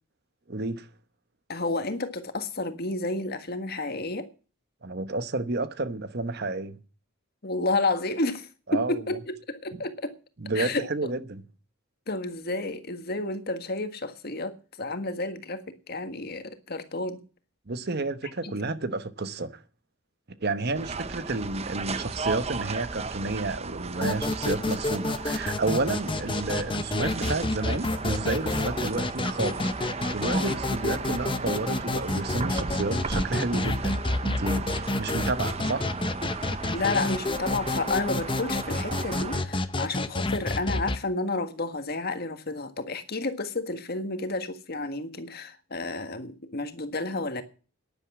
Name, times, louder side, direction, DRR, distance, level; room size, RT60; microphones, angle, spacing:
voice 1, 0.5-0.9 4.8-6.8 8.7-9.0 10.4-11.4 17.7-19.6 20.4-35.9, right 3 dB, 50° right, 1.1 m, -31 dB
voice 2, 1.5-4.3 7.4-10.1 10.5-11.1 12.1-17.2 18.4-18.5 36.7-47.4, left 2 dB, 50° left, 1.6 m, -31 dB
sound 1, 20.7-39.4, right 4 dB, 30° right, 0.7 m, -35 dB
sound 2, 23.9-41.0, left 2 dB, 25° left, 0.8 m, -30 dB
11.0 x 10.5 x 7.3 m
head